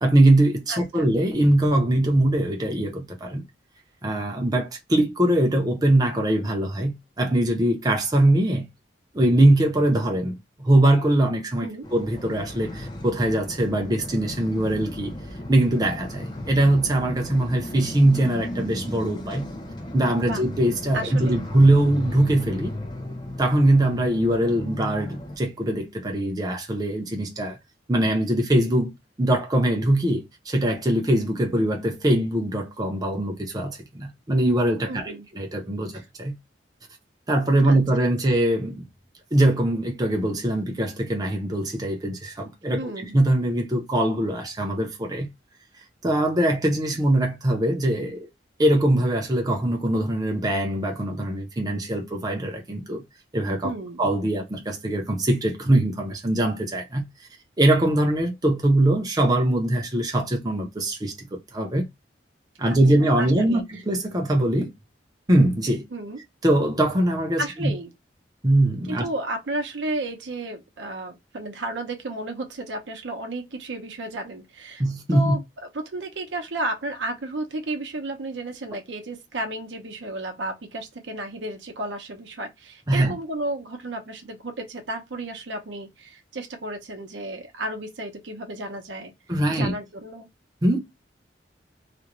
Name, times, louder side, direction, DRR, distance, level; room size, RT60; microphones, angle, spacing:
voice 1, 0.0-3.4 4.0-8.7 9.1-15.2 15.5-19.5 19.9-22.8 23.4-27.6 27.9-36.4 37.3-38.9 39.3-45.3 46.0-48.3 48.6-53.0 53.3-53.7 54.0-57.1 57.6-61.9 62.6-64.7 65.3-65.8 66.4-67.7 68.4-69.1 74.8-75.4 82.9-83.1 89.3-89.7 90.6-90.8, right 1 dB, 20° right, 0.6 m, -22 dB
voice 2, 0.7-1.1 11.6-11.8 20.1-20.4 20.9-21.4 34.9-35.3 37.7-37.8 42.7-43.2 53.6-54.0 62.7-63.6 65.9-66.2 67.4-67.9 68.9-74.8 75.1-75.4 75.7-89.1 89.5-90.3, right 2 dB, 75° right, 0.7 m, -33 dB
sound 1, 11.8-25.4, left 1 dB, 25° left, 0.5 m, -35 dB
2.5 x 2.2 x 2.9 m
head